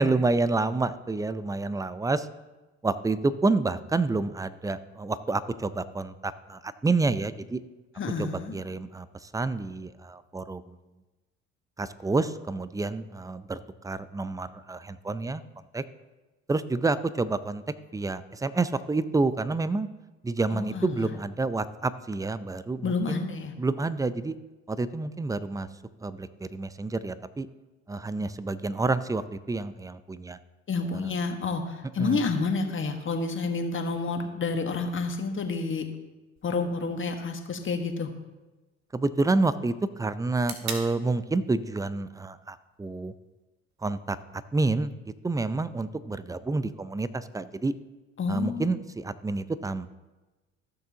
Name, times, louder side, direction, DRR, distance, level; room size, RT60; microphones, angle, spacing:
voice 1, 0.0-2.3 2.8-7.6 8.2-10.7 11.8-13.6 13.8-15.4 15.7-15.8 16.5-17.6 17.9-19.9 20.2-23.2 23.6-24.3 24.7-25.7 26.0-27.5 27.9-30.4 32.0-32.2 38.9-43.1 43.8-44.2 44.5-44.9 45.2-47.7 48.3-50.0, right 3 dB, 10° right, 15 dB, 0.5 m, -28 dB
voice 2, 8.0-8.6 20.5-21.1 22.8-23.5 30.7-35.8 36.4-38.1 48.2-48.7, left 4 dB, 35° left, 4 dB, 1.5 m, -29 dB
sound 1, 36.4-44.3, right 5 dB, 55° right, 1.6 m, -46 dB
15.5 x 6.7 x 2.9 m, 1.1 s
hypercardioid pair, 60°, 33 cm